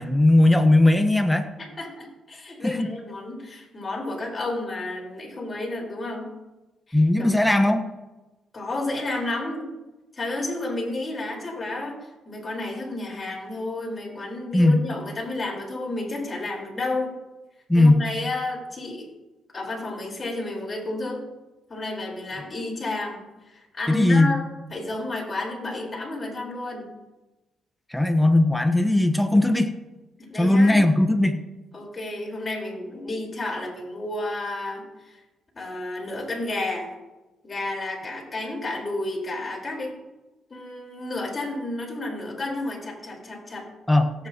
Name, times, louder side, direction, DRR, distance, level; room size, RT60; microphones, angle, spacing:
voice 1, 0.0-1.5 2.6-2.9 6.9-7.8 14.5-14.8 17.7-18.0 23.9-24.3 27.9-29.7 30.4-31.4 43.9-44.1, left 1 dB, 5° left, 6 dB, 1.2 m, -18 dB
voice 2, 1.6-6.3 6.9-7.3 8.5-9.7 10.1-17.2 17.7-19.1 19.5-21.3 21.7-24.4 24.7-26.9 30.2-30.8 31.7-35.2 35.5-36.9 37.4-40.0 40.5-43.7, left 2 dB, 30° left, -2 dB, 4.6 m, -31 dB
17.5 x 9.2 x 3.0 m, 1.1 s
cardioid pair, 90°, 0 cm